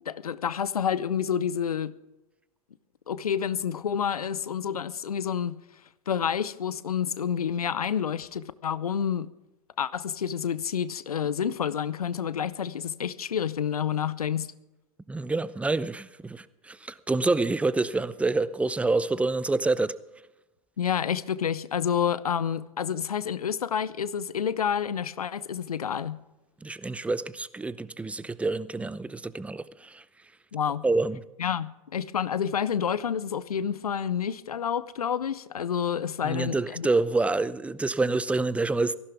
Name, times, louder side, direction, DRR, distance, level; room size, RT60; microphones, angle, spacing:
voice 1, 0.1-1.9 3.1-5.6 6.1-9.3 9.8-14.5 20.8-26.2 30.5-30.8 31.4-36.9, left 8 dB, 80° left, 0.7 m, -29 dB
voice 2, 15.1-20.0 26.6-30.0 30.8-31.2 36.2-39.0, right 3 dB, 5° right, 0.6 m, -27 dB
18.0 x 15.5 x 3.5 m
figure-of-eight pair, 95°, 19 cm